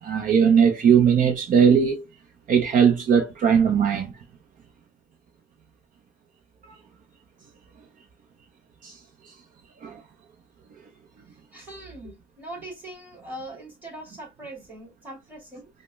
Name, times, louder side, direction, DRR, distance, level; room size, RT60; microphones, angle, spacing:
voice 1, 0.0-2.0 2.5-4.1 8.8-9.0 9.8-10.0, right 7 dB, 50° right, 0.6 m, -19 dB
voice 2, 11.5-15.7, right 1 dB, 10° right, 2.3 m, -41 dB
4.9 x 2.1 x 2.3 m
cardioid pair, 110°, 17 cm